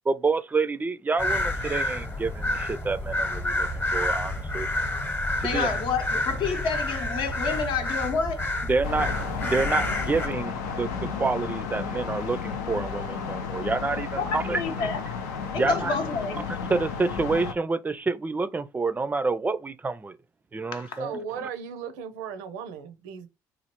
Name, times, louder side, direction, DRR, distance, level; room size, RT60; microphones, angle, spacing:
voice 1, 0.1-4.7 5.4-5.7 8.7-14.6 15.5-15.9 16.7-20.2 20.5-21.2, right 3 dB, 20° right, 0.4 m, -28 dB
sound 1, 1.2-10.3, left 1 dB, 25° left, 0.9 m, -29 dB
voice 2, 5.4-8.5 14.2-15.0 15.5-16.4 20.7-21.0, left 5 dB, 65° left, 0.8 m, -29 dB
sound 2, 8.8-17.5, left 5 dB, 85° left, 0.5 m, -33 dB
voice 3, 21.0-23.3, right 7 dB, 85° right, 0.5 m, -36 dB
3.1 x 2.4 x 3.0 m
hypercardioid pair, 65°, 9 cm